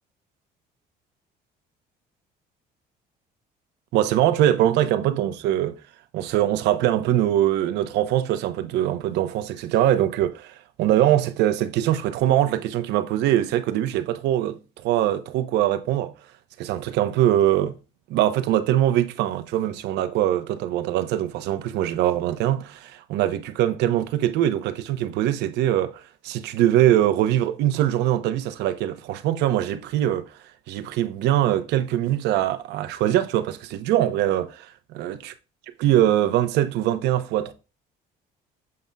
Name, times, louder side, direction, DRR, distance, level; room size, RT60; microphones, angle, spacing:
voice 1, 3.9-5.8 6.1-16.1 16.6-17.8 18.1-30.3 30.7-35.2 35.8-37.5, right 12 dB, 85° right, 0.8 m, -22 dB
7.7 x 5.3 x 2.3 m
cardioid pair, 110°, 17 cm